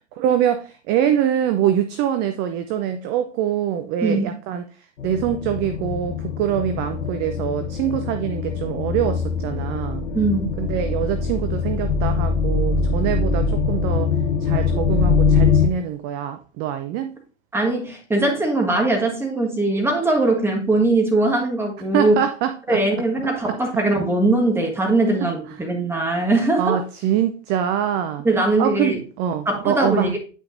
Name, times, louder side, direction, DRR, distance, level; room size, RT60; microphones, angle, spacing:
voice 1, 0.2-4.6 5.0-10.0 10.6-14.1 14.4-17.1 21.9-22.8 23.5-23.6 25.2-25.3 26.6-28.2 28.6-30.1, right 10 dB, 30° right, 0.5 m, -24 dB
sound 1, 5.0-15.7, left 5 dB, 85° left, 1.1 m, -22 dB
voice 2, 10.1-10.5 17.5-22.1 22.7-26.8 28.2-29.0 29.4-30.2, right 2 dB, 5° right, 1.5 m, -20 dB
9.0 x 5.8 x 2.6 m
hypercardioid pair, 110°, 36 cm